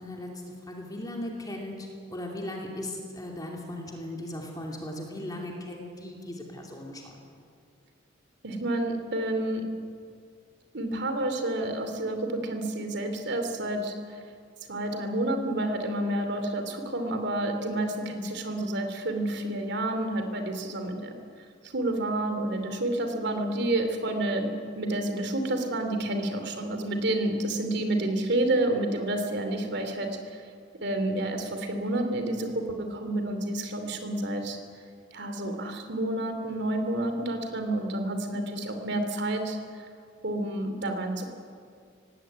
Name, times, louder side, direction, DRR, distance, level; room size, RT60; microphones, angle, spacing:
voice 1, 0.0-7.2, left 1 dB, 20° left, 0 dB, 2.8 m, -38 dB
voice 2, 8.4-9.6 10.7-14.2 14.7-21.1 21.6-30.4 30.8-34.6 35.1-39.9 40.2-41.3, right 1 dB, 60° right, 6 dB, 2.9 m, -29 dB
18.0 x 17.0 x 9.4 m, 2.2 s
head